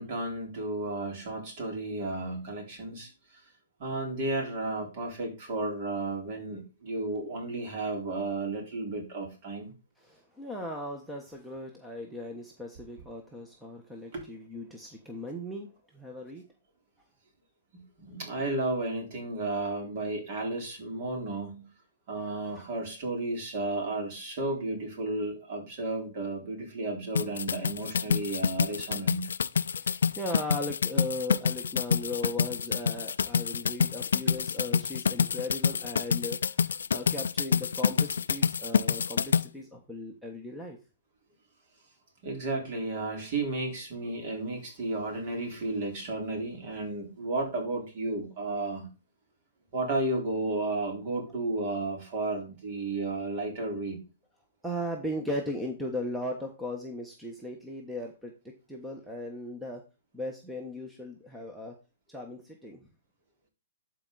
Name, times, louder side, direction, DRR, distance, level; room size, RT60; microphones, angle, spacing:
voice 1, 0.0-3.4 3.8-9.7 14.1-14.2 17.7-21.7 22.1-29.3 34.3-34.4 42.2-48.9 49.7-54.0, right 2 dB, 45° right, 1 dB, 4.1 m, -33 dB
voice 2, 10.0-16.4 29.7-40.8 54.6-59.8 60.1-61.8 62.1-62.9, left 1 dB, 5° right, 1 dB, 1.2 m, -37 dB
sound 1, 27.2-39.4, left 6 dB, 85° left, 0.4 m, -27 dB
12.0 x 4.7 x 4.0 m, 0.31 s
hypercardioid pair, 150°, 0 cm